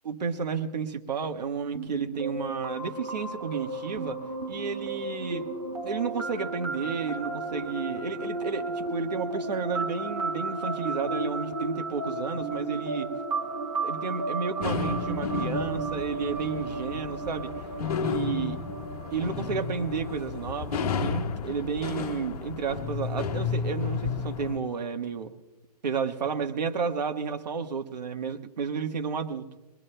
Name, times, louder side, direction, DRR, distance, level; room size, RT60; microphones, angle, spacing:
voice 1, 0.0-4.2 4.5-5.5 5.8-13.1 13.8-17.7 18.0-18.6 19.1-25.3 25.8-29.5, right 6 dB, 85° right, 7 dB, 1.3 m, -32 dB
sound 1, 1.7-21.3, right 3 dB, 60° right, 4.4 m, -34 dB
sound 2, 14.6-24.6, left 6 dB, 65° left, 1.3 m, -32 dB
23.5 x 22.0 x 2.2 m, 1.1 s
hypercardioid pair, 155°, 21 cm